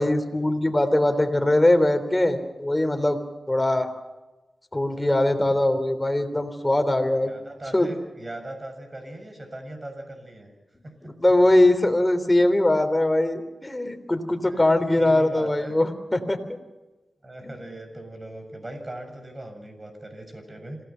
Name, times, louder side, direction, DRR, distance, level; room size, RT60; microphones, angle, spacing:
voice 1, 0.0-3.2 3.5-3.9 4.7-7.3 7.7-7.9 11.0-16.4 17.4-17.5, left 1 dB, 20° left, 6 dB, 3.4 m, -21 dB
voice 2, 7.2-10.5 10.8-11.2 14.4-15.8 17.2-20.8, right 1 dB, 35° right, 5 dB, 7.0 m, -39 dB
27.0 x 17.5 x 5.7 m, 1.1 s
cardioid pair, 55°, 0 cm